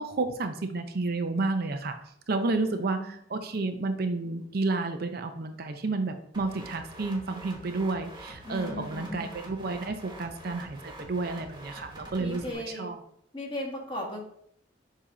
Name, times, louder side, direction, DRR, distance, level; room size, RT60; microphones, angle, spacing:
voice 1, 0.0-2.0 2.3-13.0, right 3 dB, 55° right, 6 dB, 0.6 m, -31 dB
voice 2, 2.6-3.1 8.4-9.3 12.2-13.0 13.3-14.2, left 1 dB, 25° left, -2 dB, 1.6 m, -37 dB
sound 1, 6.3-12.5, right 1 dB, 25° right, 1.3 m, -46 dB
7.4 x 2.9 x 4.9 m, 0.68 s
head